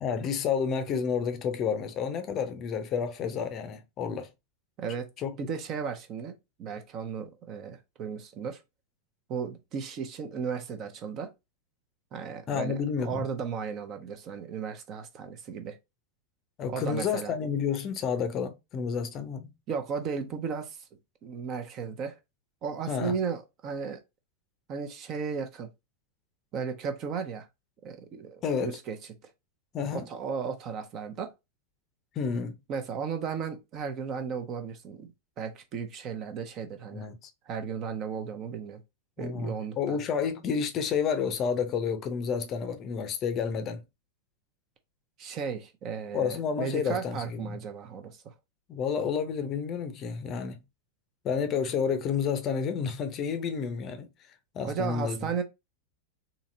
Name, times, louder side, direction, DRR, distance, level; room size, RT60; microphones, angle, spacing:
voice 1, 0.0-4.3 5.2-5.3 12.5-13.2 16.6-19.5 22.9-23.2 28.4-28.8 29.7-30.1 32.2-32.5 36.9-37.2 39.2-43.8 46.1-47.6 48.7-50.6 51.2-54.1 54.5-55.2, left 6 dB, 30° left, 0.7 m, -30 dB
voice 2, 4.8-5.1 5.4-6.3 6.6-8.6 9.3-11.3 12.1-15.8 16.7-17.3 19.7-20.9 21.2-22.2 22.6-24.0 24.7-25.7 26.5-27.5 27.8-29.0 29.9-31.3 32.7-35.1 35.4-37.1 37.5-38.8 39.2-40.0 45.2-48.3 54.6-55.4, right 6 dB, 35° right, 0.8 m, -35 dB
4.1 x 2.8 x 2.6 m
figure-of-eight pair, 90°, 0 cm